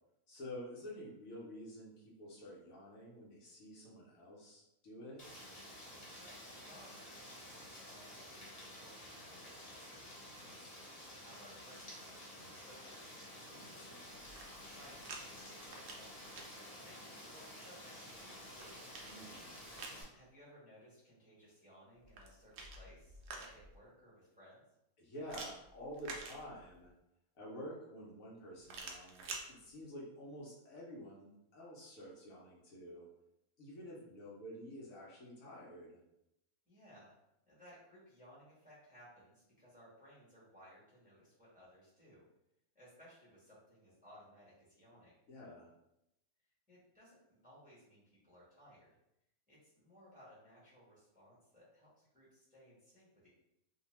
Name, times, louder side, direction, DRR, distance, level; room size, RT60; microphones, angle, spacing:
voice 1, 0.3-5.2 10.2-10.6 13.5-14.1 19.0-19.6 25.0-26.9 27.3-33.1 33.6-36.0 45.3-45.7, equal, 70° left, -5 dB, 1.1 m, -50 dB
Rain, 5.2-20.0, left 1 dB, 45° left, 0.5 m, -52 dB
voice 2, 6.1-10.0 10.4-13.4 14.7-18.8 20.1-24.6 34.0-34.1 36.7-37.1 37.4-42.2 42.7-45.1 46.7-48.9 49.5-53.3, equal, 5° right, -9 dB, 0.9 m, -61 dB
sound 1, 14.2-15.2 15.5-16.5 18.2-20.0 22.0-23.8 25.3-26.9 28.6-29.5, right 3 dB, 65° right, 0.6 m, -49 dB
2.7 x 2.2 x 3.0 m, 0.84 s
omnidirectional pair, 1.6 m